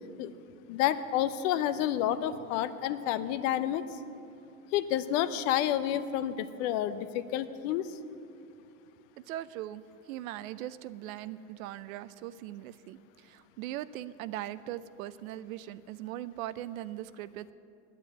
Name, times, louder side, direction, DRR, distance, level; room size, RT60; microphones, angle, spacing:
voice 1, 0.7-3.8 4.7-7.9, left 11 dB, 60° left, 13 dB, 0.8 m, -29 dB
voice 2, 9.3-17.5, right 13 dB, 75° right, 16 dB, 0.6 m, -40 dB
9.6 x 9.3 x 9.5 m, 2.6 s
supercardioid pair, 120°, 42 cm